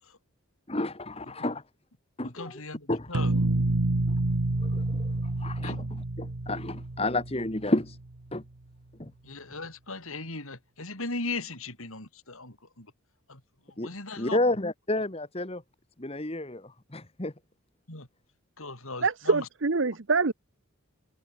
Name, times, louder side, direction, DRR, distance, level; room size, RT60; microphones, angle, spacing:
voice 1, 0.7-1.6 2.2-2.5 2.9-3.1 4.6-5.8 6.2-8.0 8.3-8.4 9.0-9.1 13.8-13.9 14.2-15.6 16.0-17.3, left 2 dB, 25° left, 1.5 m, -30 dB
voice 2, 2.2-3.4 5.6-5.9 9.2-12.9 13.3-14.4 17.9-18.1 18.6-19.5, left 3 dB, 70° left, 8.0 m, -38 dB
sound 1, 3.1-8.0, right 2 dB, 80° right, 1.3 m, -28 dB
voice 3, 19.0-20.3, right 4 dB, 55° right, 0.8 m, -25 dB
head